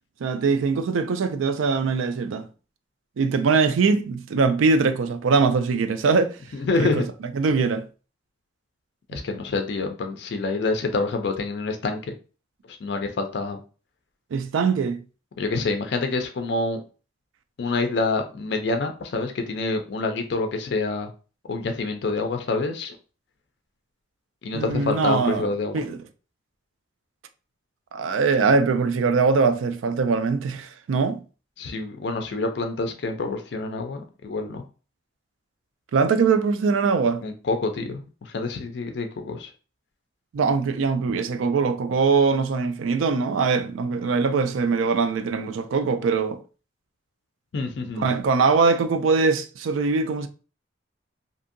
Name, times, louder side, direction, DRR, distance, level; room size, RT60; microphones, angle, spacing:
voice 1, 0.2-2.5 3.2-6.4 6.8-7.0 7.3-7.8 9.1-9.2 14.3-15.0 24.5-25.5 25.7-26.0 27.9-31.2 35.9-37.2 40.3-46.4 48.0-50.3, right 4 dB, 85° right, 0.4 m, -22 dB
voice 2, 6.5-7.1 9.1-12.1 12.7-13.6 15.4-16.8 17.6-21.1 21.5-23.0 24.4-25.8 31.6-34.6 37.2-39.5 47.5-48.1, left 3 dB, 55° left, 0.4 m, -27 dB
2.7 x 2.6 x 2.5 m
head